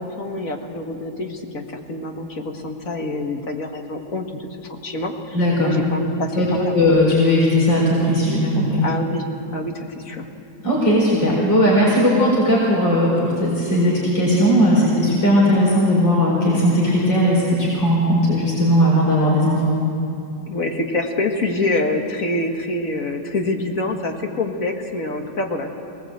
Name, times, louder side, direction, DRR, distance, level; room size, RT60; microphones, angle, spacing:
voice 1, 0.0-1.6 1.9-6.8 8.8-9.3 9.5-10.3 20.5-25.7, left 2 dB, 50° left, 3 dB, 2.1 m, -26 dB
voice 2, 5.3-5.8 6.3-8.8 10.6-19.6, equal, 90° left, -4 dB, 5.3 m, -17 dB
23.5 x 19.0 x 8.0 m, 2.6 s
omnidirectional pair, 1.9 m